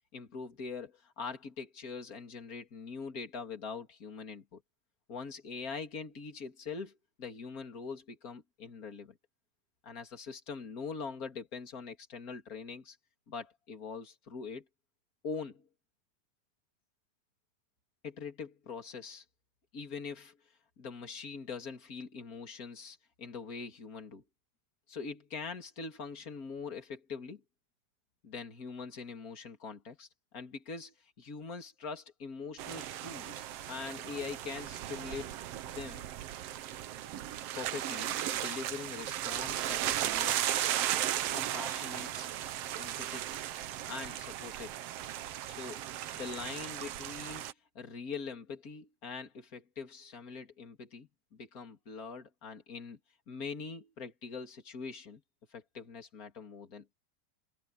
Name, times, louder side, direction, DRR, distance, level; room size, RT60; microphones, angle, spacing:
voice 1, 0.1-4.6 5.1-6.9 7.2-9.1 9.8-13.0 13.3-14.6 15.2-15.6 18.0-19.2 19.7-20.4 20.8-24.2 24.9-27.4 28.2-30.1 30.3-36.1 37.6-40.4 41.3-42.3 42.8-43.3 43.9-44.8 45.5-45.8 46.1-47.5 47.7-53.0 53.3-55.2 55.5-56.9, left 5 dB, 25° left, 2.8 m, -43 dB
sound 1, 32.6-47.5, right 12 dB, 90° right, 1.3 m, -36 dB
omnidirectional pair, 4.0 m